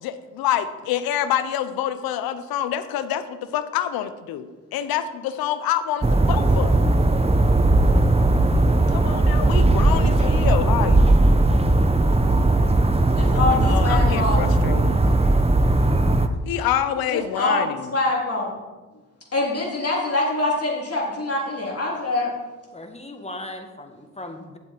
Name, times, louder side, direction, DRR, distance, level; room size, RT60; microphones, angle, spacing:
voice 1, 0.0-6.8 8.9-11.0 13.3-15.0 16.5-17.9, left 10 dB, 90° left, 12 dB, 0.7 m, -27 dB
sound 1, 6.0-16.3, right 2 dB, 15° right, 0.9 m, -18 dB
voice 2, 13.2-14.4 17.1-18.6 19.3-22.3, left 2 dB, 45° left, -3 dB, 3.5 m, -24 dB
voice 3, 22.7-24.6, left 1 dB, 20° left, 5 dB, 1.7 m, -37 dB
11.0 x 7.5 x 4.5 m, 1.2 s
supercardioid pair, 45°, 35 cm